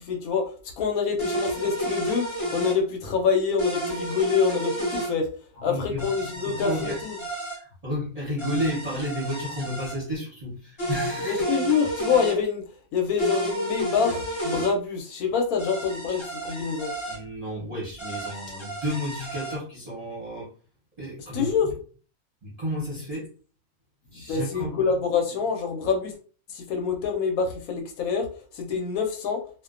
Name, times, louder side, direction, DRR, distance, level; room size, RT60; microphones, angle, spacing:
voice 1, 0.1-0.5 0.8-5.3 5.6-7.2 11.2-12.6 12.9-16.9 21.3-21.7 24.3-26.1 26.5-28.3 28.5-29.4, left 6 dB, 75° left, 3 dB, 1.0 m, -26 dB
sound 1, 1.2-2.8 3.6-5.1 6.0-7.6 8.4-10.0 10.8-12.4 13.2-14.7 15.6-17.2 18.0-19.6, right 1 dB, 30° left, 0.6 m, -31 dB
voice 2, 5.6-6.1 6.5-7.0 7.5-11.4 17.1-20.5 21.0-21.5 22.4-23.3 24.1-24.9, equal, 35° right, -6 dB, 0.6 m, -32 dB
2.4 x 2.1 x 2.4 m, 0.40 s
omnidirectional pair, 1.6 m